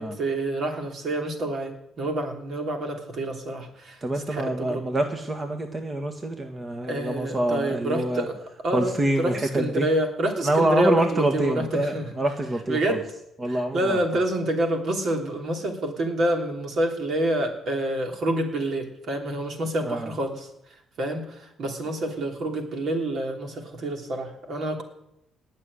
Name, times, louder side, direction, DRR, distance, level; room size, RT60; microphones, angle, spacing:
voice 1, 0.0-4.0 4.3-4.8 6.9-8.3 8.6-8.9 9.2-12.1 12.7-13.0 13.5-20.5 21.0-24.8, right 1 dB, 60° right, 3 dB, 3.1 m, -27 dB
voice 2, 4.0-8.3 8.7-9.9 10.4-13.0 13.4-14.0 19.8-20.1, right 1 dB, 30° right, 5 dB, 1.7 m, -26 dB
18.5 x 6.6 x 9.9 m, 0.82 s
cardioid pair, 80°, 0 cm